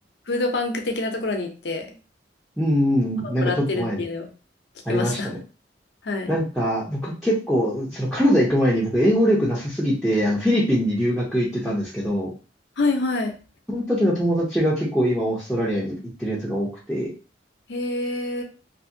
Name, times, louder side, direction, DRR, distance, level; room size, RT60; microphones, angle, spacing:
voice 1, 0.3-1.9 3.2-4.3 4.9-5.3 6.0-6.4 12.8-13.3 17.7-18.4, left 2 dB, 75° left, 4 dB, 0.6 m, -26 dB
voice 2, 2.6-4.0 4.9-5.4 6.3-12.3 13.7-17.1, equal, ahead, -9 dB, 0.6 m, -22 dB
2.7 x 2.6 x 2.6 m, 0.35 s
head